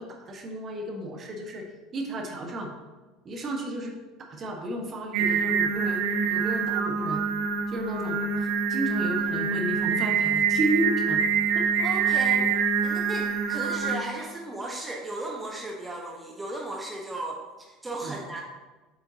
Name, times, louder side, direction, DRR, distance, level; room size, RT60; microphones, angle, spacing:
voice 1, 0.0-1.7 1.9-2.7 3.2-6.0 6.3-7.2 7.7-11.2 11.5-12.4 18.0-18.2, right 1 dB, 40° right, 2 dB, 1.4 m, -33 dB
Singing, 5.1-14.0, right 6 dB, 60° right, 0.7 m, -25 dB
voice 2, 11.8-12.4 12.8-18.4, right 2 dB, 15° right, -1 dB, 1.1 m, -35 dB
7.8 x 6.8 x 2.9 m, 1.2 s
hypercardioid pair, 70°, 0 cm